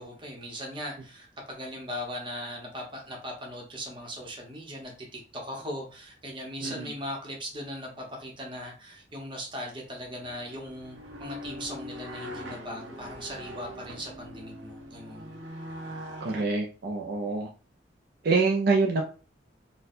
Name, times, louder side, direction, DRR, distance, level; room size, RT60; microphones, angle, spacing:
voice 1, 0.0-15.4, equal, 30° right, 0 dB, 0.9 m, -39 dB
voice 2, 6.6-6.9 16.2-17.5 18.2-19.0, right 3 dB, 60° right, 1 dB, 0.5 m, -26 dB
sound 1, 9.9-16.4, equal, 85° right, 0.8 m, -42 dB
4.1 x 2.2 x 2.6 m, 0.36 s
head